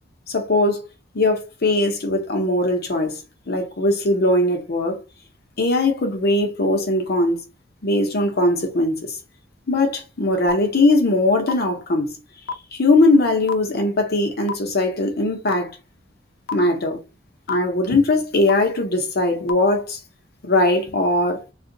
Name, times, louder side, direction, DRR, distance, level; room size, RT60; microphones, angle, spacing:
voice 1, 0.3-0.8 1.1-3.2 3.5-5.0 5.6-7.4 7.8-9.2 9.7-12.1 12.7-15.8 16.5-17.0 17.5-20.0 20.4-21.4, left 2 dB, 55° left, 0.9 m, -20 dB
sound 1, 10.5-10.6 11.5-11.6 12.5-12.6 13.5-13.6 14.5-14.6 15.5-15.6 16.5-16.6 17.5-17.6 18.5-18.6 19.5-19.6, left 6 dB, 85° left, 0.5 m, -25 dB
2.7 x 2.5 x 3.9 m
head